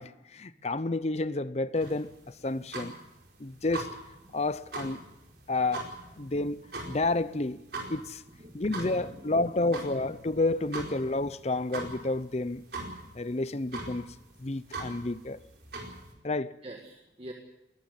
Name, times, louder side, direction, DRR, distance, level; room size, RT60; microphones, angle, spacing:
voice 1, 0.0-2.1 2.4-3.0 3.4-3.9 4.3-5.0 5.5-5.9 6.2-6.6 6.9-7.6 7.9-8.2 8.5-12.6 13.2-14.1 14.4-15.4 16.2-16.6, left 2 dB, 35° left, 0.7 m, -30 dB
sound 1, 1.8-16.1, right 3 dB, 60° right, 4.7 m, -42 dB
voice 2, 8.4-10.0 16.6-17.3, right 1 dB, 30° right, 1.8 m, -45 dB
20.0 x 14.0 x 9.5 m
head